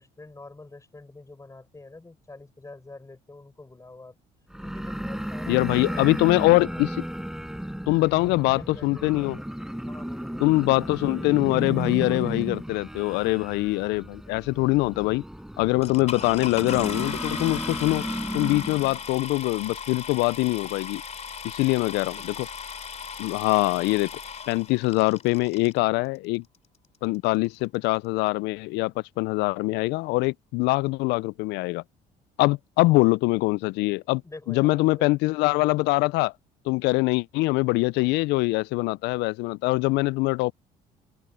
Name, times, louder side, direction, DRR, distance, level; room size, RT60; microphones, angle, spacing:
voice 1, 0.0-4.1 4.6-7.0 8.2-9.5 9.9-10.5 21.9-22.3 34.2-35.1, left 2 dB, 15° left, 7.2 m, -46 dB
sound 1, 4.5-19.0, equal, 5° right, 5.6 m, -34 dB
voice 2, 5.5-6.9 7.9-9.4 10.4-15.2 15.6-18.0 18.3-21.0 21.4-22.3 23.2-24.1 24.5-26.4 27.0-31.8 32.4-34.2 34.5-36.3 36.7-40.5, left 22 dB, 75° left, 0.4 m, -23 dB
sound 2, 15.8-25.8 26.5-26.6 27.1-27.2 27.4-27.8, left 6 dB, 40° left, 2.9 m, -37 dB
open air
supercardioid pair, 75°, 18 cm